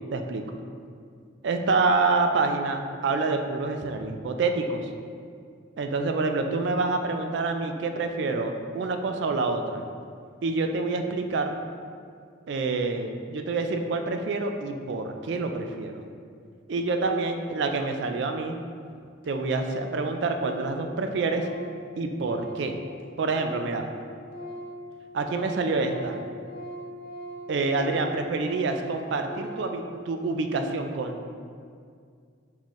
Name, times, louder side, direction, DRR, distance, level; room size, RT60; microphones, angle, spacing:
voice 1, 0.1-0.6 1.4-4.9 5.8-9.8 10.4-11.6 12.5-15.9 16.7-18.6 19.3-21.5 22.0-22.8 23.2-23.9 25.1-26.2 27.5-31.3, right 3 dB, 60° right, 5 dB, 0.3 m, -27 dB
Organ, 18.9-19.0 19.2-19.3 19.6-20.0 20.3-23.9 24.1-29.8, equal, 50° left, 0.5 m, -41 dB
4.2 x 3.7 x 3.0 m, 2.2 s
head